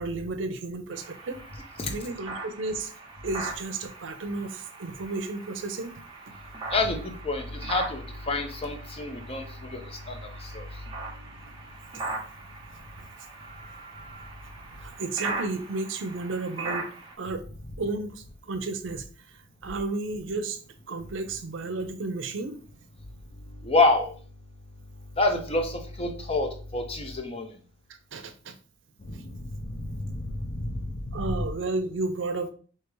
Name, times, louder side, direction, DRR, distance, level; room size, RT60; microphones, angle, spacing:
voice 1, 0.0-1.4 1.9-2.9 3.2-6.0 13.0-13.1 14.8-16.9 17.2-17.4 17.8-20.6 20.9-22.6 28.1-28.5 31.1-32.5, right 3 dB, 75° right, 9 dB, 0.6 m, -32 dB
sound 1, 0.9-17.1, right 3 dB, 25° right, 0.9 m, -40 dB
voice 2, 6.7-10.6 23.6-24.1 25.2-27.5 29.0-31.4, left 2 dB, 30° left, 5 dB, 0.7 m, -28 dB
4.7 x 2.8 x 3.1 m, 0.40 s
head